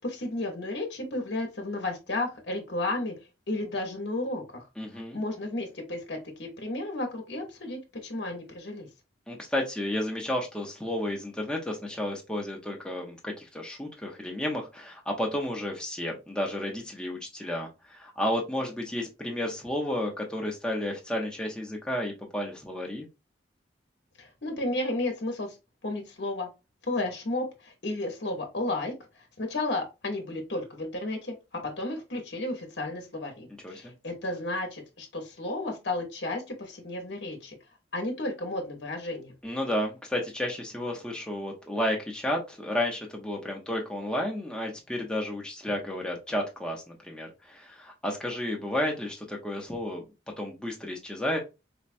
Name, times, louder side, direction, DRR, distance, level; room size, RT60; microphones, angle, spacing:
voice 1, 0.0-3.2 3.5-4.6 5.1-8.9 24.2-25.6 25.8-26.5 26.9-28.9 29.4-37.6 37.9-39.3, left 2 dB, 60° left, 0.9 m, -33 dB
voice 2, 4.8-5.2 9.3-23.1 33.6-33.9 39.4-50.0 50.4-51.4, left 1 dB, 5° left, 0.7 m, -32 dB
4.3 x 2.2 x 2.5 m
head